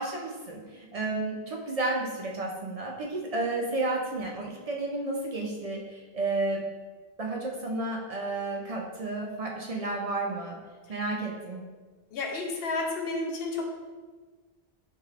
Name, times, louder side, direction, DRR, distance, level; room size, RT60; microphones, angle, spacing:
voice 1, 0.0-6.7 7.2-10.6 10.9-11.6, right 2 dB, 55° right, -1 dB, 0.4 m, -32 dB
voice 2, 12.1-13.6, left 3 dB, 65° left, 1 dB, 0.8 m, -31 dB
4.6 x 3.2 x 2.4 m, 1.4 s
omnidirectional pair, 1.1 m